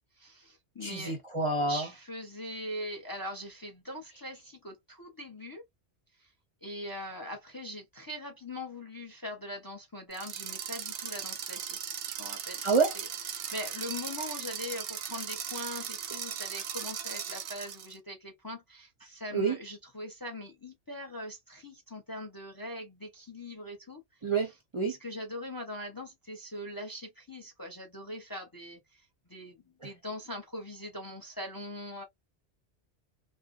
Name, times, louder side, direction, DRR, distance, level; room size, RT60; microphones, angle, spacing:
voice 1, 0.2-1.2 1.7-5.6 6.2-6.3 6.6-11.8 12.1-12.6 13.0-13.1 13.3-24.2 24.8-32.0, left 1 dB, 25° left, 0.5 m, -41 dB
voice 2, 0.8-1.9 12.6-12.9 19.3-19.6 24.2-24.9, right 4 dB, 35° right, 0.5 m, -28 dB
sound 1, 10.1-17.9, right 8 dB, 85° right, 0.9 m, -38 dB
2.5 x 2.1 x 2.4 m
omnidirectional pair, 1.1 m